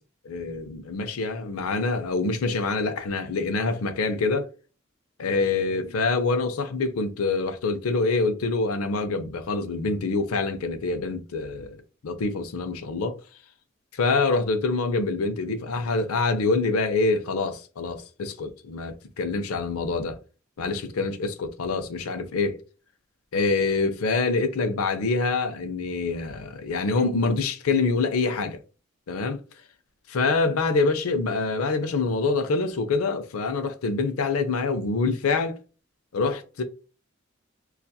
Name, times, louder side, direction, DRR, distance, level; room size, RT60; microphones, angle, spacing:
voice 1, 0.2-4.5 5.2-13.2 13.9-20.2 20.6-22.6 23.3-28.6 29.1-29.4 30.1-35.6 36.1-36.6, left 3 dB, 90° left, 0.5 m, -26 dB
2.7 x 2.4 x 2.3 m
head